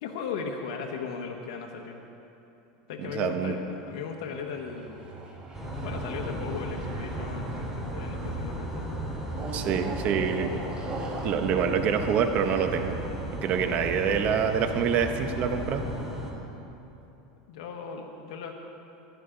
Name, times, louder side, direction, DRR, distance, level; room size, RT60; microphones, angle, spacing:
voice 1, 0.0-2.0 2.9-5.0 5.8-9.0 17.5-18.5, left 5 dB, 70° left, 1 dB, 1.1 m, -37 dB
voice 2, 3.0-3.5 9.5-10.6 11.2-13.0 13.3-15.9, right 7 dB, 45° right, 7 dB, 0.9 m, -26 dB
sound 1, 3.9-8.5 9.3-12.9, right 3 dB, 30° right, 1.5 m, -41 dB
sound 2, 5.5-16.3, right 1 dB, 5° right, 2.3 m, -35 dB
14.5 x 11.5 x 3.8 m, 3.0 s
supercardioid pair, 125°, 3 cm